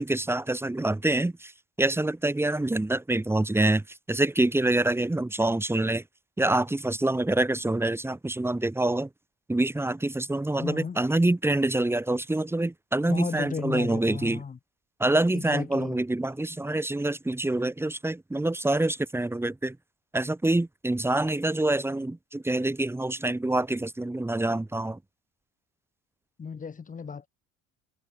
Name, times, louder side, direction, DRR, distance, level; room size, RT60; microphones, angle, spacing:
voice 1, 0.0-1.5 1.8-3.8 4.1-6.0 6.4-9.1 9.5-14.4 15.0-19.8 20.1-25.0, right 2 dB, 10° right, 4.9 m, -26 dB
voice 2, 10.6-11.0 13.1-14.6 15.3-16.0 26.4-27.3, left 6 dB, 25° left, 4.3 m, -35 dB
cardioid pair, 130°, 30 cm